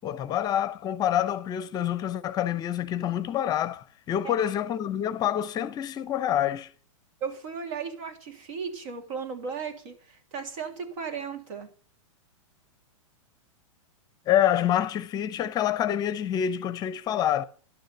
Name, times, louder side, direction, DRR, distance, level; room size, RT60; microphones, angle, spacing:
voice 1, 0.0-6.7 14.3-17.4, left 10 dB, 25° left, 0.6 m, -27 dB
voice 2, 7.2-11.7, right 6 dB, 70° right, 3.0 m, -36 dB
12.0 x 6.5 x 6.8 m
hypercardioid pair, 140°, 17 cm